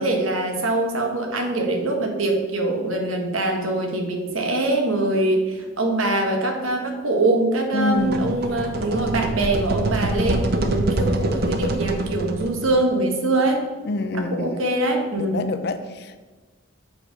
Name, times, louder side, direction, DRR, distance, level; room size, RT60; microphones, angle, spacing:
voice 1, 0.0-13.6 14.1-15.5, right 2 dB, 90° right, 3 dB, 1.3 m, -23 dB
voice 2, 7.7-8.3 13.8-14.6 15.2-16.2, left 2 dB, 50° left, 10 dB, 0.5 m, -26 dB
sound 1, 7.9-12.8, right 2 dB, 50° right, 0.6 m, -25 dB
7.4 x 4.5 x 5.2 m, 1.3 s
head